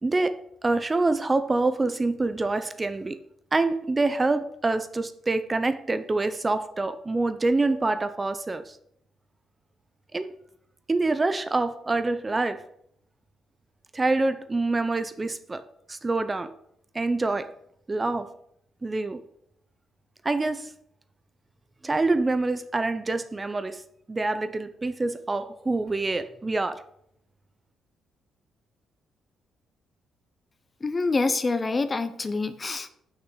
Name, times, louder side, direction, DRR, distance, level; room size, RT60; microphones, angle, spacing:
voice 1, 0.0-3.2 3.5-8.8 10.1-10.3 10.9-12.6 13.9-15.6 15.9-16.5 16.9-17.5 17.9-18.3 18.8-19.2 20.2-20.7 21.8-23.8 24.1-26.8, right 3 dB, 25° right, 11 dB, 0.6 m, -26 dB
voice 2, 30.8-32.9, left 3 dB, 30° left, 11 dB, 0.7 m, -26 dB
6.4 x 5.9 x 6.2 m, 0.71 s
cardioid pair, 90°, 0 cm